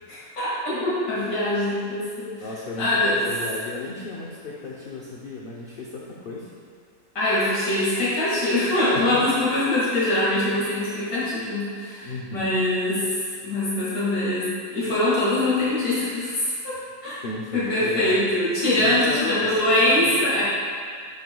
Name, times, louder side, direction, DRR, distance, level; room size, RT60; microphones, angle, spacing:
voice 1, 0.1-2.5 2.8-3.1 7.1-13.0 13.4-16.6 17.0-17.2 17.5-20.4, left 1 dB, 80° left, -10 dB, 2.6 m, -23 dB
voice 2, 2.4-6.5 8.9-9.2 10.4-10.5 12.0-12.5 17.2-18.2 18.8-19.6 19.9-20.1, left 3 dB, 50° left, -4 dB, 0.7 m, -33 dB
10.0 x 6.3 x 2.3 m, 2.1 s
omnidirectional pair, 1.6 m